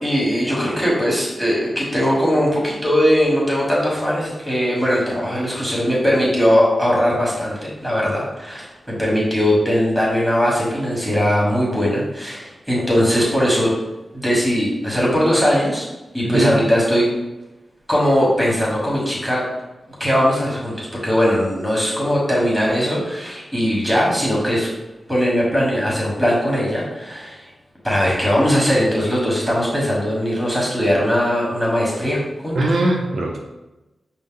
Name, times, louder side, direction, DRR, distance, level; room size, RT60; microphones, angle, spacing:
voice 1, 0.0-13.8 14.1-15.8 16.1-17.1 17.9-19.5 20.0-24.7 25.1-27.4 27.8-32.6, equal, 5° right, -4 dB, 1.4 m, -19 dB
voice 2, 16.2-16.6 32.5-33.4, right 2 dB, 70° right, 1 dB, 0.5 m, -20 dB
5.3 x 2.1 x 3.7 m, 1.0 s
wide cardioid pair, 100°, 0 cm